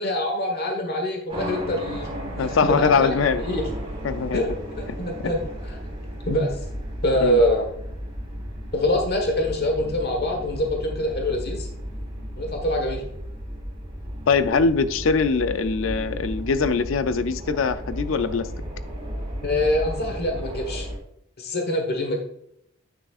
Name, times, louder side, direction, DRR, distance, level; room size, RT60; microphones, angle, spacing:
voice 1, 0.0-2.1 2.4-3.1 3.4-3.7 4.3-5.4 5.6-5.8 6.2-6.6 7.0-7.7 8.7-11.7 12.4-13.0 19.4-20.9 21.4-22.2, left 1 dB, 55° left, 3 dB, 1.3 m, -24 dB
sound 1, 1.3-21.0, equal, 30° right, 2.6 m, -34 dB
voice 2, 2.4-3.4 4.0-4.4 5.2-5.3 7.2-7.4 14.3-18.5, left 5 dB, 75° left, 12 dB, 0.5 m, -22 dB
9.6 x 6.1 x 2.4 m, 0.73 s
head